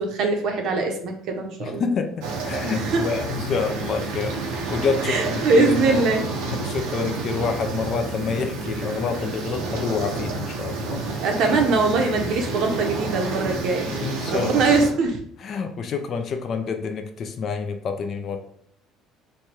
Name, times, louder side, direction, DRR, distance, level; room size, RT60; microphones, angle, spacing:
voice 1, 0.0-1.9 2.8-3.0 5.0-6.2 11.2-13.9 14.3-15.2, right 3 dB, 55° right, 3 dB, 0.7 m, -22 dB
voice 2, 1.6-4.4 4.7-6.0 6.4-11.0 13.5-13.6 13.9-14.7 15.4-18.4, left 5 dB, 40° left, 6 dB, 0.4 m, -28 dB
sound 1, 2.2-14.9, right 3 dB, 85° right, 0.8 m, -29 dB
3.2 x 2.3 x 4.3 m, 0.67 s
cardioid pair, 150°, 0 cm